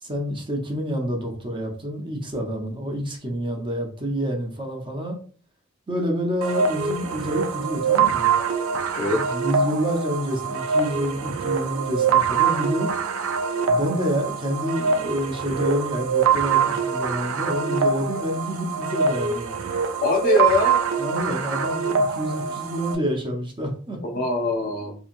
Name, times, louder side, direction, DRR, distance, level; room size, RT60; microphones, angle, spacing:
voice 1, 0.0-5.2 5.9-8.3 9.1-12.9 13.7-19.5 21.0-24.0, equal, 25° right, 1 dB, 0.5 m, -28 dB
sound 1, 6.4-23.0, right 6 dB, 75° right, 0.4 m, -24 dB
voice 2, 8.9-9.2 20.0-20.8 24.0-25.0, left 3 dB, 40° left, 3 dB, 0.5 m, -22 dB
2.8 x 2.6 x 2.5 m, 0.43 s
head